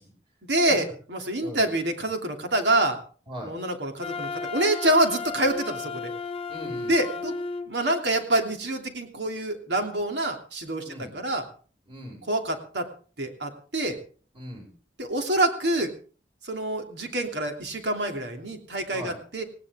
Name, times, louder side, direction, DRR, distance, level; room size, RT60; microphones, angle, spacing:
voice 1, 0.5-3.0 3.4-6.1 6.9-7.3 7.7-11.4 12.2-12.9 13.2-14.0 15.0-15.9 16.4-19.4, right 1 dB, 70° right, 4 dB, 3.0 m, -26 dB
Wind instrument woodwind instrument, 4.0-7.7, left 4 dB, 35° left, 0.8 m, -34 dB
voice 2, 6.5-6.9 10.8-11.1 11.9-12.2 14.3-14.7 18.9-19.2, equal, 30° right, 1 dB, 6.2 m, -39 dB
19.0 x 17.5 x 3.7 m, 0.41 s
head